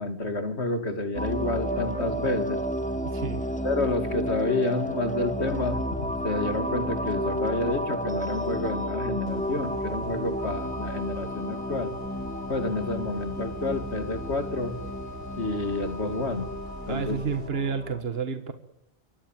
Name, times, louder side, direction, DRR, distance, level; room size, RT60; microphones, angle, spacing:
voice 1, 0.0-2.6 3.6-11.9 12.5-14.7 15.4-16.5 16.9-17.2, left 2 dB, 85° left, 9 dB, 3.1 m, -29 dB
sound 1, 1.1-18.0, equal, 5° left, 2.6 m, -32 dB
voice 2, 3.0-3.5 16.9-18.5, right 6 dB, 65° right, 9 dB, 1.8 m, -30 dB
sound 2, 9.3-17.5, right 1 dB, 50° right, 4.7 m, -44 dB
Wind instrument woodwind instrument, 10.3-17.1, left 3 dB, 50° left, 1.8 m, -43 dB
26.5 x 24.5 x 7.5 m, 0.82 s
omnidirectional pair, 1.1 m